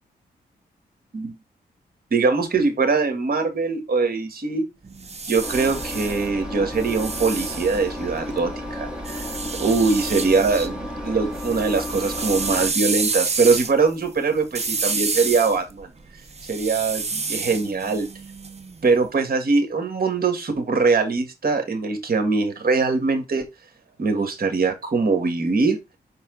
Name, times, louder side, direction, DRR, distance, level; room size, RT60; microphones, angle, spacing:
voice 1, 2.1-4.7 5.3-9.2 9.5-15.9 16.5-18.1 18.8-23.5 24.0-25.8, right 4 dB, 60° right, 6 dB, 2.0 m, -22 dB
sound 1, 4.8-8.4 9.1-10.7 11.1-19.0, right 4 dB, 40° right, 1.0 m, -29 dB
Engine, 5.4-12.7, left 1 dB, 5° right, 3.8 m, -33 dB
5.7 x 4.1 x 4.0 m, 0.23 s
cardioid pair, 60°, 18 cm